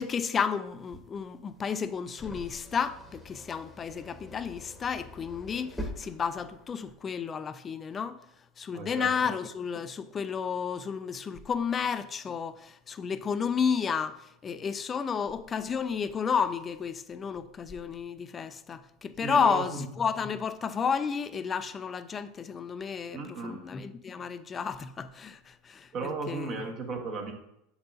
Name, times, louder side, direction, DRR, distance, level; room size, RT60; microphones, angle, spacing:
voice 1, 0.0-8.2 8.6-26.6, left 6 dB, 30° left, 0.4 m, -32 dB
sound 1, 0.7-6.9, equal, 10° left, 1.0 m, -45 dB
voice 2, 8.7-9.1 19.2-19.9 23.1-23.6 25.9-27.3, right 3 dB, 45° right, 1.2 m, -35 dB
6.8 x 5.5 x 2.7 m
hypercardioid pair, 85°, 0 cm